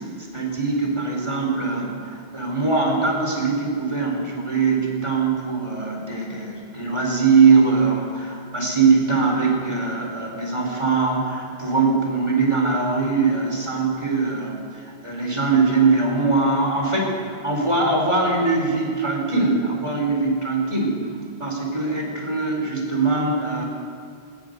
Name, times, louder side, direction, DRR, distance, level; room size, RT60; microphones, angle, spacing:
voice 1, 0.3-21.0 21.4-23.6, right 4 dB, 30° right, 0 dB, 4.3 m, -21 dB
20.0 x 20.0 x 6.7 m, 2.3 s
omnidirectional pair, 1.1 m